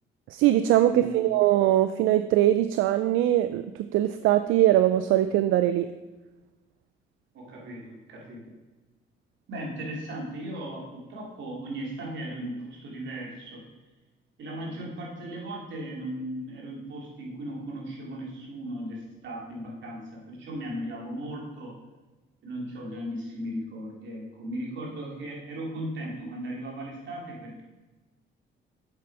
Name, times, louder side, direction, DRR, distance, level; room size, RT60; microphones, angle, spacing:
voice 1, 0.3-5.9, right 13 dB, 85° right, 11 dB, 0.4 m, -22 dB
voice 2, 0.8-1.3 7.3-8.5 9.5-13.6 14.4-21.8 22.4-27.6, right 1 dB, 65° right, -2 dB, 2.9 m, -37 dB
7.6 x 7.3 x 4.7 m, 1.2 s
cardioid pair, 90°, 20 cm